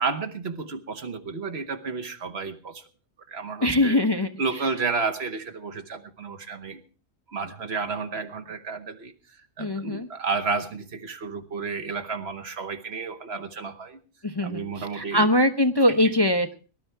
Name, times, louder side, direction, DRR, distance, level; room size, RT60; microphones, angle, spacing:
voice 1, 0.0-2.8 3.3-4.0 4.4-6.8 7.3-9.1 9.6-14.0 14.4-15.3 15.9-16.1, right 4 dB, 60° right, 8 dB, 1.5 m, -31 dB
voice 2, 3.6-4.3 9.6-10.1 14.2-16.5, left 1 dB, 25° left, 6 dB, 0.6 m, -22 dB
19.0 x 11.5 x 4.5 m, 0.35 s
omnidirectional pair, 1.3 m